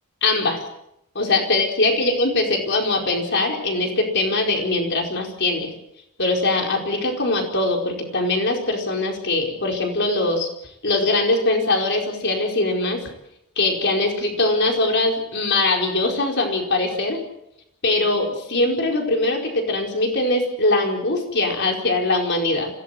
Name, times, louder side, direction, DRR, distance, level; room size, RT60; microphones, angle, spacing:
voice 1, 0.2-0.6 1.1-5.7 6.2-10.5 10.8-13.0 13.6-17.2 17.8-22.7, left 2 dB, 50° left, 2 dB, 4.8 m, -21 dB
26.0 x 17.5 x 7.8 m, 0.81 s
head